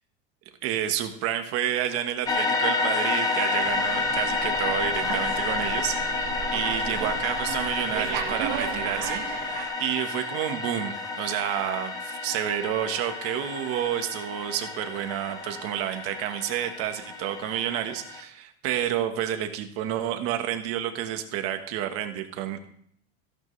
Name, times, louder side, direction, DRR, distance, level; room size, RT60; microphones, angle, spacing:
voice 1, 0.6-22.6, right 11 dB, 45° right, 6 dB, 1.4 m, -30 dB
sound 1, 2.3-18.2, left 3 dB, 10° left, 0.8 m, -30 dB
Slam, 3.6-9.7, right 8 dB, 60° right, 1.8 m, -35 dB
15.5 x 11.5 x 3.3 m, 0.65 s
cardioid pair, 175°, 32 cm